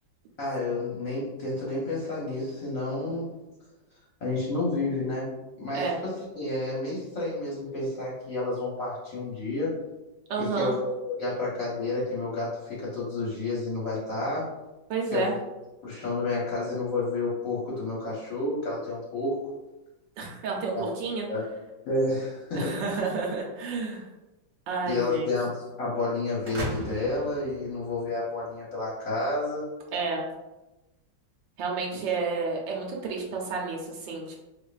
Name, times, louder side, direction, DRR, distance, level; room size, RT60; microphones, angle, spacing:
voice 1, 0.4-3.4 4.2-9.7 10.4-14.5 15.1-15.4 15.8-19.5 20.7-20.9 21.3-21.4 21.8-22.8 24.9-29.7, left 2 dB, 60° left, -6 dB, 0.9 m, -30 dB
voice 2, 10.3-10.7 14.9-15.3 20.2-21.2 22.5-24.1 24.7-25.3 29.9-30.3 31.6-34.4, right 4 dB, 75° right, -1 dB, 1.2 m, -30 dB
sound 1, 26.4-28.4, right 1 dB, 55° right, 0.9 m, -36 dB
4.3 x 2.4 x 2.3 m, 1.0 s
omnidirectional pair, 2.1 m